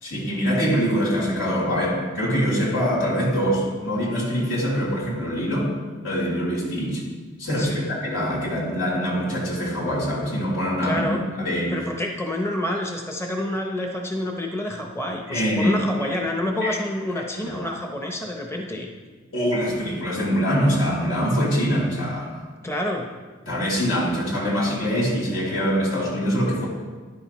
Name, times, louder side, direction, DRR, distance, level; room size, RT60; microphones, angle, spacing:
voice 1, 0.0-5.7 6.0-7.0 7.4-11.0 11.4-11.7 15.3-16.2 16.6-16.8 17.2-17.6 19.3-22.4 23.5-26.7, equal, 85° left, -6 dB, 3.6 m, -24 dB
voice 2, 7.6-7.9 10.8-11.3 11.7-18.9 22.6-23.1, left 1 dB, 15° left, 1 dB, 0.7 m, -28 dB
13.5 x 10.5 x 3.1 m, 1.4 s
head